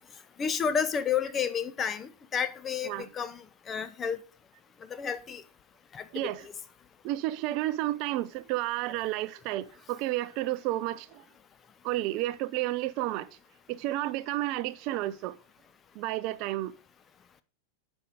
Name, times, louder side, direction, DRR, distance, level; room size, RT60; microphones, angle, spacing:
voice 1, 0.4-4.2 4.9-5.4 5.9-6.5, left 7 dB, 20° left, 0.7 m, -31 dB
voice 2, 6.1-6.5 7.0-11.2 11.8-13.3 13.7-15.4 15.9-16.7, right 16 dB, 40° right, 0.4 m, -31 dB
9.9 x 5.3 x 4.9 m
figure-of-eight pair, 90°, 0 cm